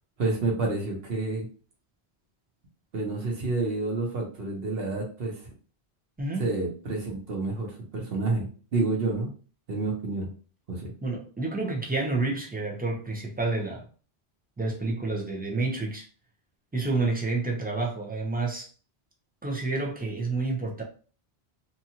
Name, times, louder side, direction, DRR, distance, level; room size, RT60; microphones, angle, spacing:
voice 1, 0.2-1.5 2.9-5.5 6.4-8.5 8.7-9.3 9.7-10.3 10.7-10.9, right 3 dB, 60° right, 0 dB, 1.1 m, -29 dB
voice 2, 6.2-6.5 11.0-13.9 14.6-16.1 16.7-18.7 19.4-20.8, right 3 dB, 15° right, 0 dB, 0.3 m, -29 dB
2.8 x 2.4 x 2.8 m, 0.39 s
omnidirectional pair, 1.1 m